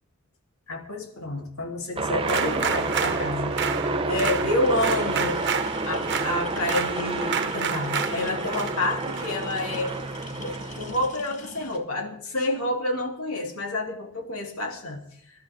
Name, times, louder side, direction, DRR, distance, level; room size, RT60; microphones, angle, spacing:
voice 1, 0.7-5.4 5.9-9.9 10.3-15.0, left 1 dB, 70° left, 2 dB, 3.7 m, -29 dB
sound 1, 2.0-11.1, right 2 dB, 25° right, 0.9 m, -29 dB
sound 2, 2.2-10.5, right 7 dB, 55° right, 1.3 m, -31 dB
sound 3, 4.6-11.8, left 2 dB, 35° left, 1.7 m, -44 dB
26.0 x 12.5 x 3.8 m, 0.65 s
head